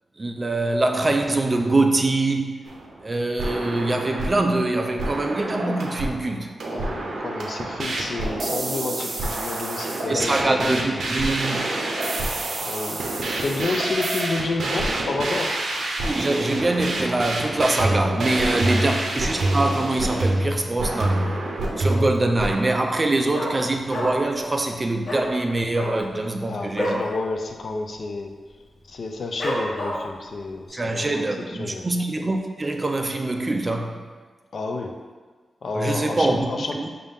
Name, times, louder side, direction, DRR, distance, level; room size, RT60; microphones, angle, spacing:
voice 1, 0.2-2.6 3.0-6.5 10.1-11.9 16.0-21.4 21.8-27.0 30.7-34.0 35.7-36.9, right 2 dB, 25° right, 4 dB, 0.3 m, -24 dB
sound 1, 2.7-3.0 3.4-4.5 5.0-6.3 6.6-22.6, right 1 dB, 75° right, 0.6 m, -27 dB
voice 2, 6.7-11.1 12.7-13.0 13.4-15.5 18.6-18.9 26.5-28.3 28.9-31.2 31.6-31.9 34.5-34.9 35.6-36.9, left 3 dB, 55° left, 3 dB, 0.4 m, -30 dB
Dog, 21.8-22.3 22.6-22.7 22.9-24.4 24.6-24.8 25.0-25.3 25.7-27.1 27.4-27.6 27.9-28.3 28.7-28.8 29.4-30.2 30.7-30.8, equal, 40° left, 1.0 m, -29 dB
5.3 x 2.7 x 3.4 m, 1.4 s
wide cardioid pair, 150°, 0 cm